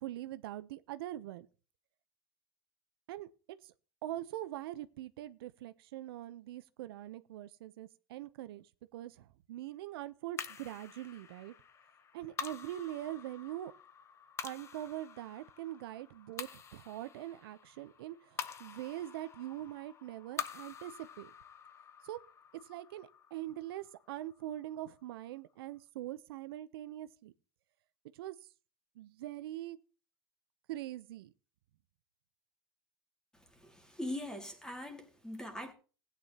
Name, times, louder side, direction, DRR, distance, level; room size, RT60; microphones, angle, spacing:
voice 1, 0.0-1.5 3.1-3.3 3.6-3.7 4.0-11.5 12.1-13.7 14.4-21.3 22.0-22.2 22.6-27.3 28.1-28.4 29.0-29.8 30.7-31.3, right 14 dB, 75° right, 0.6 m, -43 dB
sound 1, 10.4-24.9, left 7 dB, 20° left, 0.7 m, -48 dB
voice 2, 33.3-35.7, left 1 dB, 5° left, 2.1 m, -42 dB
16.0 x 9.3 x 2.8 m
supercardioid pair, 140°, 13 cm